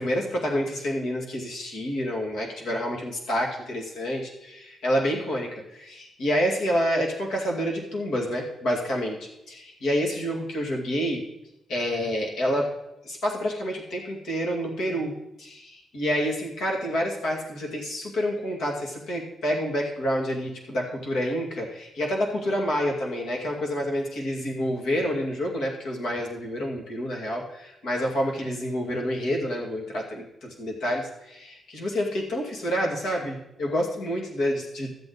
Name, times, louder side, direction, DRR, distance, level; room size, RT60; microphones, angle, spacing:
voice 1, 0.0-11.2 11.7-12.7 13.0-15.1 15.4-34.9, equal, 85° left, -1 dB, 2.3 m, -28 dB
13.0 x 7.7 x 4.0 m, 0.88 s
wide cardioid pair, 175°, 0 cm